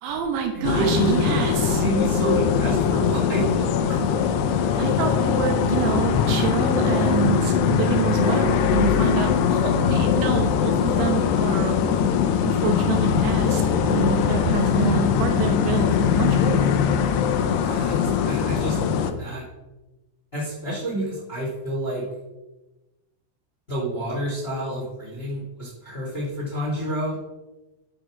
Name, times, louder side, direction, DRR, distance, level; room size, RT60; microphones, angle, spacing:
voice 1, 0.0-1.9 4.8-11.8 12.4-16.6, right 8 dB, 80° right, 4 dB, 3.0 m, -27 dB
voice 2, 0.5-1.2 1.7-4.1 17.6-19.4 20.3-22.0 23.7-27.1, right 1 dB, 15° left, -5 dB, 2.1 m, -29 dB
sound 1, 0.6-19.1, left 7 dB, 90° left, 2.4 m, -21 dB
10.5 x 5.1 x 6.1 m, 1.1 s
omnidirectional pair, 5.7 m